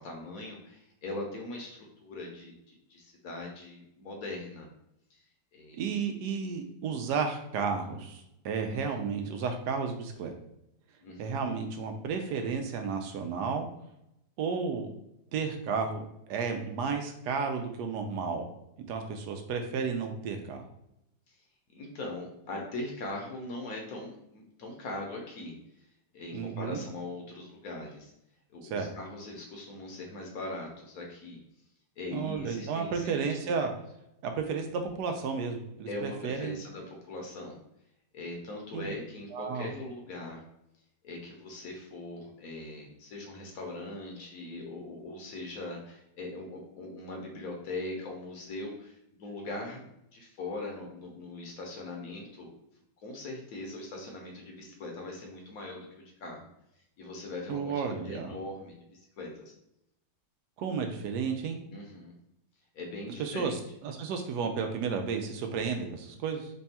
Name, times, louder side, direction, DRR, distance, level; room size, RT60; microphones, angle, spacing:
voice 1, 0.0-4.7 5.5-5.8 8.6-8.9 11.0-11.3 21.3-21.4 21.7-25.5 26.1-28.1 28.5-31.4 32.0-33.6 35.9-37.6 38.1-40.4 41.0-52.5 53.0-56.5 57.0-59.5 61.7-62.1 62.7-63.6, left 2 dB, 65° left, 0 dB, 1.1 m, -41 dB
voice 2, 5.8-10.3 11.2-13.7 14.4-14.9 15.3-18.4 18.9-20.6 26.3-26.8 28.6-28.9 32.1-33.7 34.2-36.6 38.7-39.0 39.3-39.7 57.5-58.3 60.6-61.6 63.2-66.5, right 5 dB, 80° right, 5 dB, 1.1 m, -32 dB
3.4 x 2.3 x 4.1 m, 0.81 s
omnidirectional pair, 1.8 m